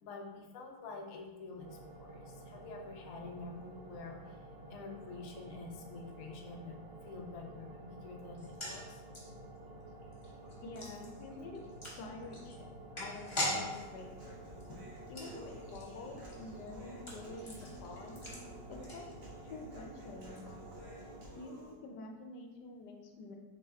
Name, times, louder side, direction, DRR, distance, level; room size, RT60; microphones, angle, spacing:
voice 1, 0.0-4.2 4.7-6.7 7.0-9.0, left 3 dB, 65° left, 1 dB, 1.0 m, -47 dB
sound 1, 1.6-21.3, right 1 dB, 55° right, 0.7 m, -51 dB
sound 2, 8.3-19.6 19.8-19.9 20.2-20.4, left 1 dB, 25° left, 0.7 m, -44 dB
voice 2, 10.6-11.6 12.0-12.7 12.9-13.2 13.5-14.1 15.1-18.2 18.7-19.1 19.4-20.7 21.3-23.4, left 3 dB, 85° left, 2 dB, 1.2 m, -48 dB
Human voice, 13.7-21.7, right 1 dB, 85° right, 1.7 m, -53 dB
4.3 x 3.3 x 3.5 m, 1.2 s
omnidirectional pair, 1.7 m